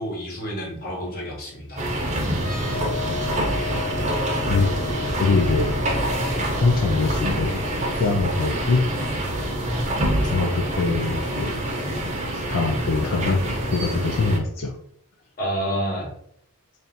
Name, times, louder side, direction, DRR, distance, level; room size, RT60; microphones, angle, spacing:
voice 1, 0.0-1.8 15.4-16.1, equal, 45° left, -2 dB, 1.3 m, -29 dB
sound 1, 1.8-14.4, right 1 dB, 30° right, 0.7 m, -26 dB
sound 2, 2.4-9.9, left 7 dB, 65° left, 1.0 m, -37 dB
voice 2, 5.2-5.8 6.0-8.9 10.2-11.5 12.3-13.4 13.7-14.8, left 4 dB, 90° left, 4 dB, 0.5 m, -24 dB
3.4 x 2.6 x 4.2 m, 0.71 s
head